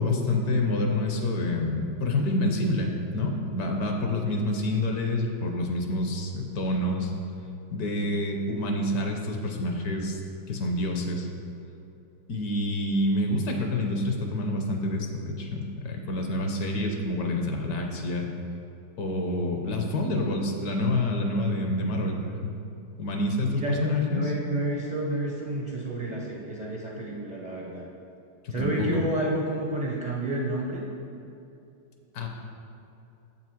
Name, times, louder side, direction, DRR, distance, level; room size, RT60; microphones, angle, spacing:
voice 1, 0.0-7.1 7.7-10.2 10.5-11.3 12.3-18.3 19.0-22.5 23.0-24.3 28.4-29.0 32.1-32.3, left 1 dB, 65° left, 2 dB, 1.3 m, -27 dB
voice 2, 23.5-27.8 28.5-30.8, right 1 dB, 60° right, -3 dB, 0.4 m, -30 dB
7.4 x 6.0 x 4.5 m, 2.8 s
omnidirectional pair, 1.9 m